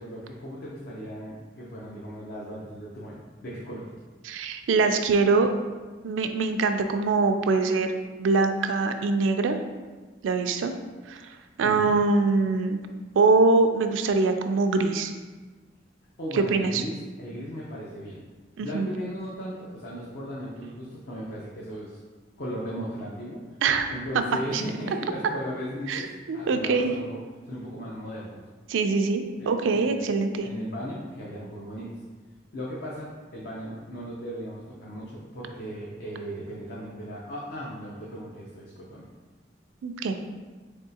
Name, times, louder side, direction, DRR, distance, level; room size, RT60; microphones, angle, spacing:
voice 1, 0.0-3.9 11.6-12.0 16.2-18.2 18.6-22.0 22.4-23.4 23.9-27.2 27.5-28.4 29.4-29.5 29.9-31.9 32.5-39.1, equal, 60° left, -5 dB, 0.6 m, -37 dB
voice 2, 4.2-5.5 6.0-7.9 8.2-9.6 10.2-10.7 11.1-11.2 11.6-12.8 13.1-15.1 16.3-16.8 18.6-18.9 23.6-23.9 24.5-24.6 25.9-26.9 28.7-30.5 39.8-40.1, right 4 dB, 85° right, 6 dB, 0.3 m, -23 dB
3.7 x 3.5 x 2.7 m, 1.3 s
head